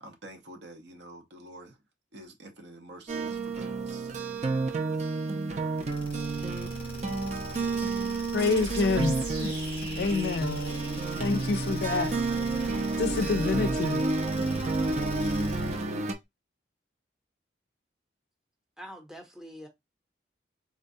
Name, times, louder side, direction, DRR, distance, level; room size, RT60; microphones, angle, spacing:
voice 1, 0.0-1.8 2.1-4.1, right 1 dB, 70° right, 0.8 m, -48 dB
sound 1, 3.1-16.1, right 3 dB, 40° right, 0.5 m, -30 dB
sound 2, 5.8-16.0, left 1 dB, 30° left, 0.8 m, -40 dB
voice 2, 8.3-9.6 10.0-10.6 11.2-12.2 13.0-14.0, left 4 dB, 60° left, 0.4 m, -27 dB
sound 3, 8.4-11.9, right 3 dB, 85° right, 1.5 m, -43 dB
voice 3, 18.8-19.7, equal, 5° right, 0.7 m, -44 dB
3.8 x 2.2 x 2.6 m
head